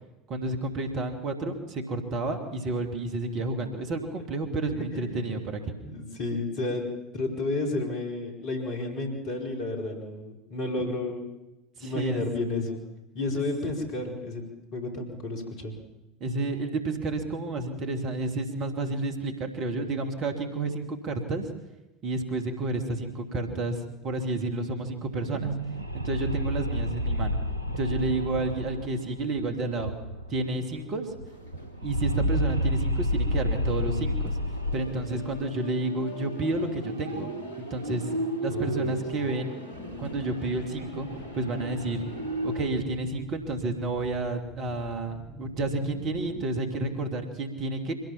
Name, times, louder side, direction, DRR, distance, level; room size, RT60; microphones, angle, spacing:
voice 1, 0.3-5.6 11.8-12.2 13.3-13.4 16.2-21.5 22.0-25.5 26.0-27.4 27.8-30.0 30.3-31.1 31.8-34.4 34.7-37.3 37.6-38.1 38.4-39.6 40.0-41.1 41.3-42.0 42.4-47.9, right 2 dB, 40° right, 5 dB, 2.8 m, -30 dB
voice 2, 4.9-5.3 5.8-11.3 11.8-12.8 13.1-14.4 14.7-15.8 34.9-35.3 38.5-38.9 39.2-39.3, left 2 dB, 50° left, 2 dB, 4.8 m, -32 dB
sound 1, 25.2-30.5 30.7-30.8 31.1-35.4, equal, 85° right, 0.7 m, -30 dB
sound 2, 31.3-32.6 32.9-33.0 33.7-42.7, right 1 dB, 75° left, 2.9 m, -37 dB
sound 3, 39.7-46.5, right 1 dB, 5° right, 2.9 m, -46 dB
24.5 x 17.0 x 7.3 m, 0.97 s
figure-of-eight pair, 70°, 0 cm